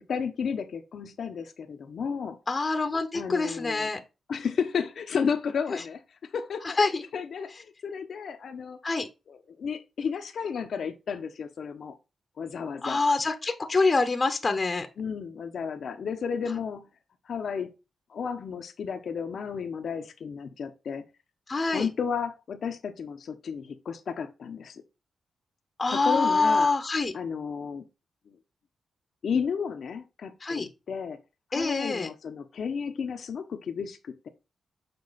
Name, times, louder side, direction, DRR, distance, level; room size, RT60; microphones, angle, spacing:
voice 1, 0.1-2.4 3.1-3.9 4.3-8.8 9.3-12.0 12.4-13.0 15.0-16.9 17.2-17.7 18.1-21.0 21.7-24.8 25.9-26.7 27.1-27.8 28.3-28.4 29.2-31.2 31.5-34.3, left 6 dB, 70° left, 0.9 m, -33 dB
voice 2, 2.5-4.0 6.6-7.0 8.8-9.1 12.8-14.9 21.5-21.9 25.8-27.1 30.4-30.7 31.5-32.1, left 3 dB, 35° left, 0.9 m, -25 dB
7.0 x 4.6 x 4.0 m
cardioid pair, 70°, 0 cm